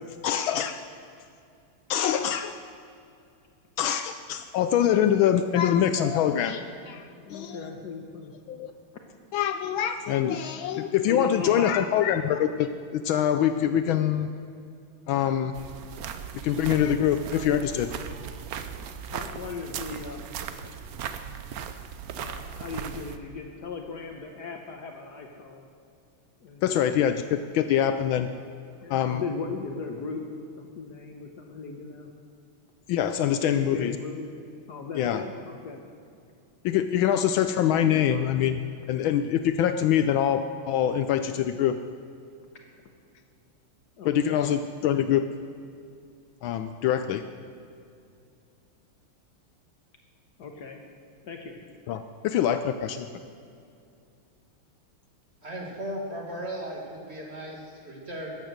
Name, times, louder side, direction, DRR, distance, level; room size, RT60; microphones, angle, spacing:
voice 1, 0.2-0.8 1.9-2.5 3.8-7.6 8.5-8.7 9.3-14.3 15.1-15.5 16.4-17.9 26.6-28.3 28.9-29.2 32.9-33.9 34.9-35.2 36.6-38.6 38.9-41.8 44.0-45.3 46.4-47.2 51.9-53.1, left 10 dB, 75° left, 9 dB, 1.3 m, -24 dB
voice 2, 7.2-8.3 11.1-11.9 19.1-20.3 22.1-25.6 26.4-26.9 28.8-32.1 33.4-34.3 34.7-35.8 44.0-44.5 50.4-50.8 51.2-51.6, left 4 dB, 60° left, 3 dB, 1.3 m, -37 dB
sound 1, 15.5-23.2, right 8 dB, 75° right, 0.8 m, -38 dB
voice 3, 55.4-58.4, equal, 30° right, -1 dB, 2.1 m, -36 dB
13.5 x 9.2 x 6.5 m, 2.4 s
omnidirectional pair, 2.4 m